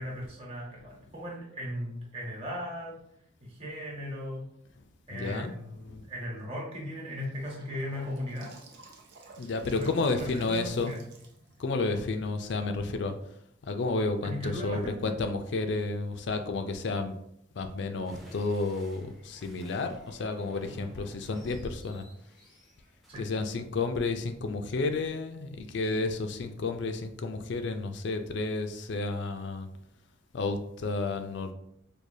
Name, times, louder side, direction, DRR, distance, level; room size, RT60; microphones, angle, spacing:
voice 1, 0.0-3.0 3.4-4.5 5.1-8.5 9.6-11.0 14.2-15.0 23.1-23.2, left 1 dB, 30° right, -4 dB, 1.0 m, -37 dB
voice 2, 5.1-5.5 5.9-6.0 9.4-11.0 11.6-17.2 17.5-22.0 23.2-29.7 30.3-31.5, left 3 dB, 60° left, 7 dB, 0.4 m, -31 dB
Gurgling / Sink (filling or washing) / Bathtub (filling or washing), 7.0-13.1, right 3 dB, 55° right, 0.6 m, -54 dB
sound 1, 18.0-23.2, equal, ahead, 0.5 m, -52 dB
4.7 x 2.3 x 2.7 m, 0.74 s
head